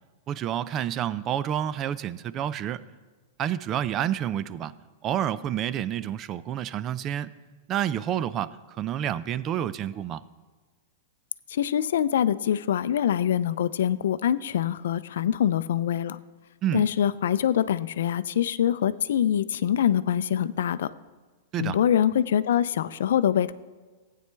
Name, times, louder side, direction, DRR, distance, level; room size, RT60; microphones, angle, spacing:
voice 1, 0.3-2.8 3.4-4.7 5.0-7.3 7.7-10.2 16.6-16.9 21.5-21.8, right 10 dB, 30° right, 17 dB, 0.4 m, -29 dB
voice 2, 11.5-16.2 16.7-20.9 21.6-23.5, left 10 dB, 75° left, 15 dB, 0.4 m, -24 dB
15.5 x 9.3 x 3.4 m, 1.3 s
hypercardioid pair, 140°, 0 cm